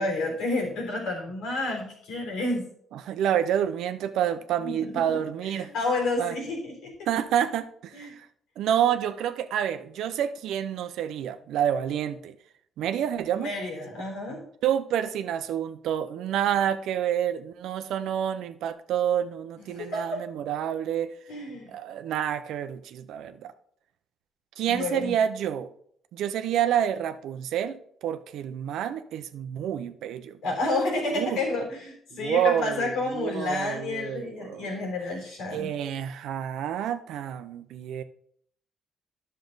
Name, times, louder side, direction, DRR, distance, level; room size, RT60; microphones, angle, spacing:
voice 1, 0.0-2.6 4.6-5.2 5.5-6.9 7.9-8.1 13.3-14.4 19.7-20.2 21.3-21.7 24.7-25.1 30.4-35.7, left 2 dB, 90° left, 3.6 m, -30 dB
voice 2, 2.9-5.7 6.2-6.3 7.1-8.3 8.6-12.4 12.8-13.5 14.6-21.1 21.7-23.5 24.6-25.7 26.1-30.4 31.1-31.4 32.1-34.7 35.5-38.0, right 10 dB, 85° right, 0.7 m, -28 dB
11.0 x 6.5 x 3.9 m
cardioid pair, 90°, 0 cm